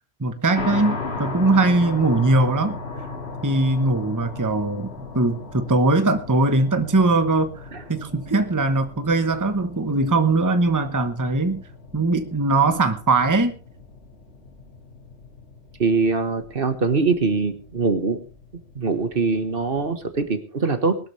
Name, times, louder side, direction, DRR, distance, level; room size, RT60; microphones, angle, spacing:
voice 1, 0.2-2.8 3.4-11.6 11.9-13.5, right 2 dB, 20° right, 9 dB, 1.0 m, -21 dB
sound 1, 0.5-20.3, left 3 dB, 85° left, 2.3 m, -37 dB
voice 2, 15.8-18.2 18.8-21.0, right 4 dB, 60° right, 9 dB, 1.6 m, -22 dB
20.5 x 12.5 x 3.3 m, 0.35 s
omnidirectional pair, 1.1 m